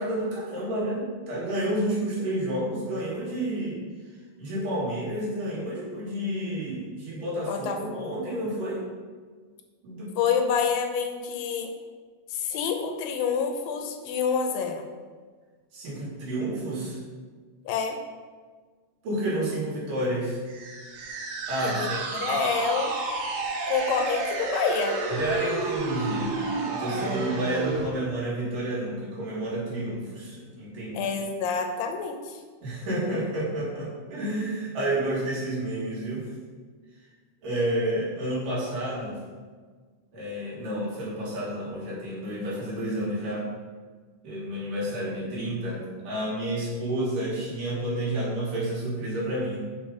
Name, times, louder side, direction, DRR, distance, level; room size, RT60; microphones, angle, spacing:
voice 1, 0.0-3.8 4.4-7.7 7.9-8.8 9.8-10.1 15.7-17.0 19.0-20.4 21.5-22.3 25.1-31.0 32.6-36.3 37.4-39.2 40.1-43.5 44.2-49.6, right 1 dB, 70° right, -6 dB, 3.6 m, -30 dB
voice 2, 7.5-8.3 10.2-11.7 12.3-14.8 17.7-18.0 21.6-22.9 23.7-25.0 30.9-32.4, left 6 dB, 80° left, 4 dB, 2.4 m, -28 dB
sound 1, 20.5-27.9, right 3 dB, 90° right, 2.8 m, -30 dB
7.1 x 4.6 x 5.1 m, 1.5 s
omnidirectional pair, 4.1 m